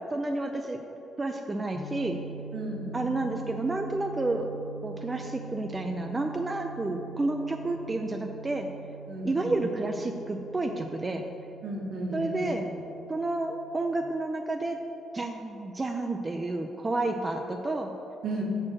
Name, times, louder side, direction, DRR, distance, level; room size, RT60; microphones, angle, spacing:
voice 1, 0.1-0.8 1.2-2.2 2.9-4.4 4.8-8.7 9.2-11.2 12.1-12.7 13.1-14.8 15.1-17.9, right 2 dB, 25° right, 3 dB, 0.4 m, -30 dB
sound 1, 1.7-14.0, right 4 dB, 60° left, 0.9 m, -43 dB
voice 2, 2.5-3.0 9.1-9.5 11.6-12.4 18.2-18.4, right 2 dB, 65° right, 0 dB, 1.2 m, -34 dB
6.2 x 4.3 x 6.3 m, 3.0 s
cardioid pair, 90°, 0 cm